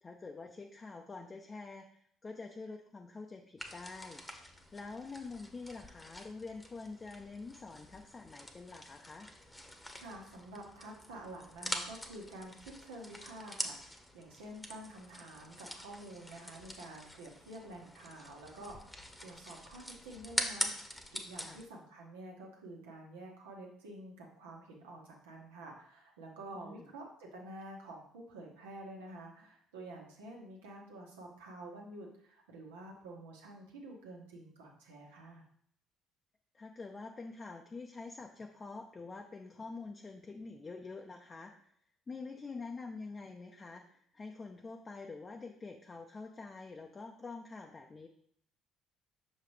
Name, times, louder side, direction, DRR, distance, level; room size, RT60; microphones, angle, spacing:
voice 1, 0.0-4.2 4.7-9.3 21.4-21.6 26.6-26.9 36.5-41.5 42.1-48.1, left 3 dB, 30° left, 2 dB, 0.6 m, -46 dB
sound 1, 3.6-21.6, left 1 dB, 10° left, 1.1 m, -44 dB
voice 2, 10.0-35.4, right 1 dB, 75° right, -1 dB, 1.3 m, -49 dB
6.5 x 5.1 x 3.2 m, 0.65 s
figure-of-eight pair, 55°, 0 cm